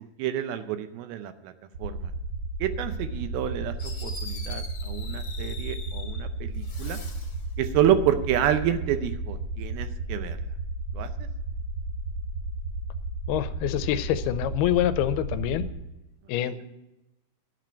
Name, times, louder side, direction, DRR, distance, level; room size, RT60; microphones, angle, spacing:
voice 1, 0.2-1.5 1.8-2.1 2.6-3.7 4.0-7.0 7.6-10.4 10.9-11.1, right 10 dB, 80° right, 10 dB, 2.5 m, -28 dB
sound 1, 1.7-15.7, right 3 dB, 60° right, 1.4 m, -33 dB
Fireworks, 3.8-6.2 6.6-7.4, left 3 dB, 30° left, 2.4 m, -42 dB
voice 2, 13.3-15.6 16.3-16.6, left 12 dB, 90° left, 11 dB, 2.6 m, -26 dB
11.0 x 7.9 x 8.8 m, 0.95 s
omnidirectional pair, 4.5 m